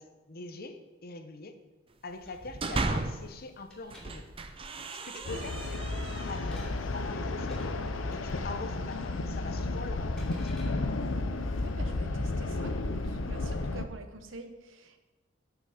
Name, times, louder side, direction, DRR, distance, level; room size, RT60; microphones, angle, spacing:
voice 1, 0.0-1.6 2.0-4.3 4.9-5.6 6.3-7.8 8.1-10.6, left 3 dB, 50° left, 8 dB, 0.8 m, -43 dB
sound 1, 2.2-3.3 3.8-6.7, right 2 dB, 30° right, 0.6 m, -36 dB
sound 2, 2.3-3.0 3.6-4.0 5.3-5.7 6.0-6.7 7.4-7.6 8.9-9.2 9.5-10.7, left 1 dB, 5° left, 2.8 m, -53 dB
voice 2, 5.1-5.4 11.6-15.0, right 2 dB, 80° right, 7 dB, 1.0 m, -47 dB
sound 3, 5.2-13.8, left 2 dB, 85° left, 0.7 m, -32 dB
9.6 x 6.0 x 5.8 m, 1.1 s
head